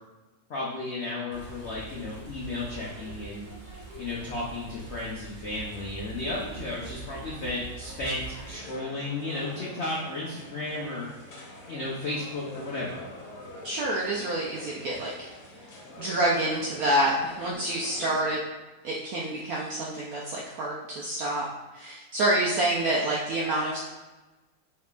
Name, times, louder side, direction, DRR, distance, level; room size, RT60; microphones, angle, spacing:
voice 1, 0.5-3.5 4.0-11.1 11.7-13.0, left 2 dB, 85° left, -5 dB, 0.5 m, -34 dB
sound 1, 1.3-8.5, right 4 dB, 40° right, 0.7 m, -43 dB
sound 2, 8.4-18.3, left 1 dB, 65° left, 1.4 m, -45 dB
voice 2, 13.6-15.3 15.6-15.7 16.0-18.4 18.8-21.5 21.7-23.8, right 1 dB, 75° right, -4 dB, 0.8 m, -27 dB
4.4 x 3.7 x 2.4 m, 1.2 s
omnidirectional pair, 2.1 m